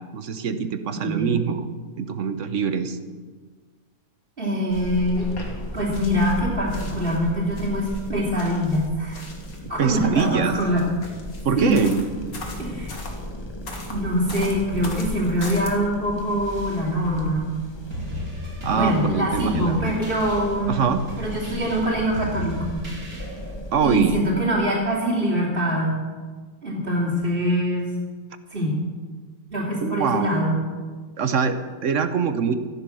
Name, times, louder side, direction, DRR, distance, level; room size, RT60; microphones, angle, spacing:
voice 1, 0.1-1.7 2.0-3.0 9.8-10.6 11.4-11.9 18.6-19.8 20.7-21.0 23.7-24.2 29.8-30.4 31.2-32.5, right 6 dB, 60° right, 10 dB, 1.2 m, -23 dB
voice 2, 0.9-1.4 4.4-5.3 5.7-9.2 9.7-10.8 11.6-11.9 12.6-13.0 13.9-17.6 18.7-20.8 21.2-22.8 23.8-26.0 26.6-27.9 28.5-28.8 29.5-30.6, equal, 40° right, -8 dB, 3.3 m, -24 dB
sound 1, 4.7-24.2, left 1 dB, 20° left, 1.2 m, -36 dB
sound 2, 5.2-6.4 6.7-9.7 10.1-13.2 13.7-15.7, left 3 dB, 75° left, 2.5 m, -40 dB
sound 3, 17.9-23.6, left 1 dB, 80° right, 3.7 m, -35 dB
14.5 x 11.5 x 6.3 m, 1.5 s
omnidirectional pair, 1.5 m